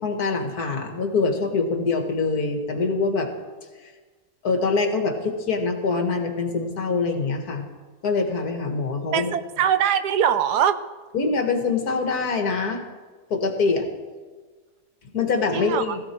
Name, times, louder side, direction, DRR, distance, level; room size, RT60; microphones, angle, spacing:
voice 1, 0.0-3.3 4.4-7.7 8.0-9.3 11.1-12.8 13.3-13.9 15.1-16.0, left 4 dB, 65° left, 5 dB, 2.2 m, -24 dB
voice 2, 9.1-10.8 15.5-15.9, right 9 dB, 80° right, 11 dB, 1.3 m, -22 dB
16.0 x 16.0 x 4.5 m, 1.4 s
omnidirectional pair, 1.8 m